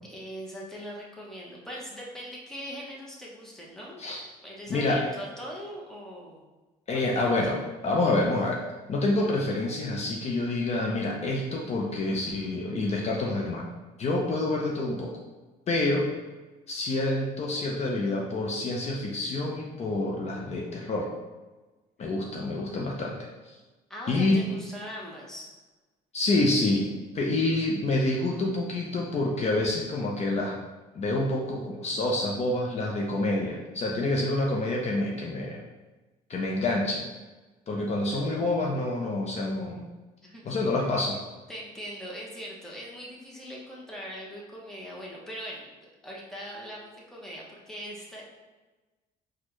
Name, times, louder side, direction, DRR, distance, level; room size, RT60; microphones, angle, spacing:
voice 1, 0.1-4.0 4.4-6.4 6.9-7.3 22.0-22.1 23.9-25.5 40.2-40.6 41.5-45.7 46.0-48.2, equal, 5° left, -4 dB, 0.9 m, -41 dB
voice 2, 4.7-5.0 6.9-8.6 8.9-13.6 14.0-15.1 15.7-16.1 16.7-21.1 22.0-23.6 24.1-24.4 26.1-26.9 27.1-30.6 30.9-35.6 36.3-37.0 37.7-39.8 40.4-41.2, left 2 dB, 40° left, -2 dB, 0.6 m, -27 dB
4.2 x 2.3 x 3.0 m, 1.2 s
cardioid pair, 110°, 17 cm